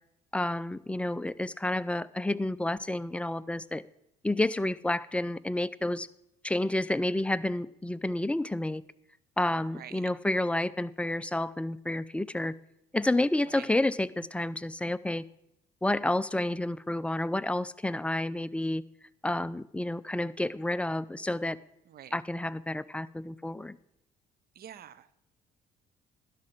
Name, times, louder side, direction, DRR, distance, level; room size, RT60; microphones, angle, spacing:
voice 1, 0.3-3.8 4.2-6.1 6.4-8.8 9.4-12.5 12.9-15.2 15.8-18.8 19.2-21.6 22.1-23.8, left 1 dB, 5° left, 16 dB, 0.4 m, -30 dB
voice 2, 9.6-10.1 13.5-13.7 21.9-22.2 24.5-25.1, right 10 dB, 50° right, 17 dB, 0.7 m, -47 dB
11.5 x 6.0 x 7.5 m, 0.84 s
hypercardioid pair, 50°, 21 cm